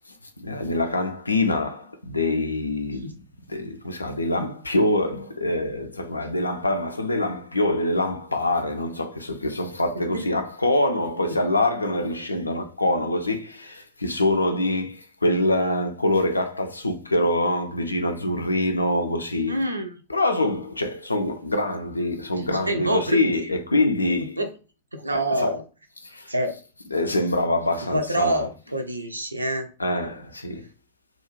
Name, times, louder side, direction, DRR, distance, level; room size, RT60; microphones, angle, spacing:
voice 1, 0.4-3.1 3.5-19.6 20.1-24.4 25.1-25.5 26.0-26.3 26.9-28.5 29.8-30.6, left 1 dB, 80° left, 0.4 m, -25 dB
voice 2, 19.5-19.9 22.4-23.2 24.4-24.5 24.9-25.6 26.3-26.6 27.9-29.7, right 1 dB, 85° right, 0.4 m, -26 dB
2.4 x 2.2 x 3.0 m
figure-of-eight pair, 90°, 0 cm